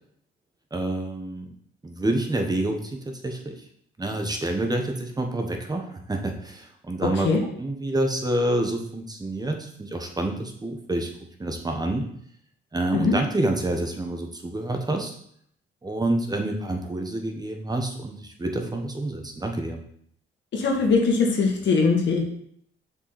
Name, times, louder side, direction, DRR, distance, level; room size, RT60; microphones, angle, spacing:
voice 1, 0.7-1.5 1.8-3.5 4.0-7.3 7.6-11.1 11.4-12.1 12.7-15.1 15.8-19.8, right 1 dB, 20° right, 3 dB, 1.2 m, -28 dB
voice 2, 20.5-22.2, left 4 dB, 65° left, 1 dB, 1.9 m, -21 dB
7.0 x 5.2 x 4.2 m, 0.65 s
cardioid pair, 90°, 20 cm